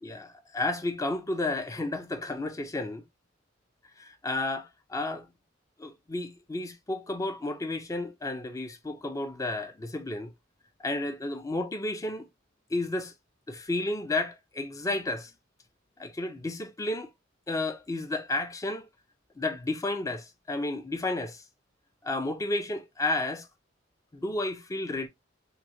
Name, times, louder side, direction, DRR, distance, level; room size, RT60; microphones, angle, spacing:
voice 1, 0.0-3.0 4.0-5.3 5.8-10.3 10.8-12.3 12.7-13.1 13.5-15.3 16.0-17.1 17.5-18.9 19.4-21.4 22.0-23.5 24.1-25.1, left 2 dB, 15° left, 0.4 m, -32 dB
3.6 x 2.0 x 2.9 m
head